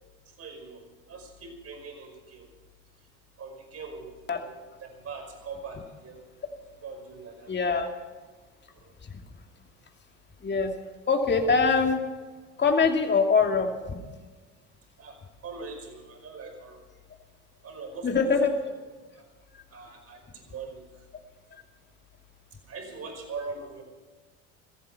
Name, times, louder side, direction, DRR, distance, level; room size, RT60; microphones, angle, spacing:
voice 1, 0.3-0.8 1.1-2.5 3.4-4.5 4.8-6.2 6.8-7.5 8.7-8.9 15.0-16.9 17.6-18.1 18.4-18.6 19.1-19.2 19.7-21.0 22.7-23.8, right 4 dB, 40° right, 3 dB, 5.3 m, -41 dB
voice 2, 7.5-7.9 9.0-9.2 10.4-10.7 11.1-12.0 12.6-14.0 18.0-18.5 21.5-21.6, left 5 dB, 30° left, 4 dB, 2.6 m, -23 dB
17.0 x 14.5 x 5.8 m, 1.4 s
hypercardioid pair, 75°, 36 cm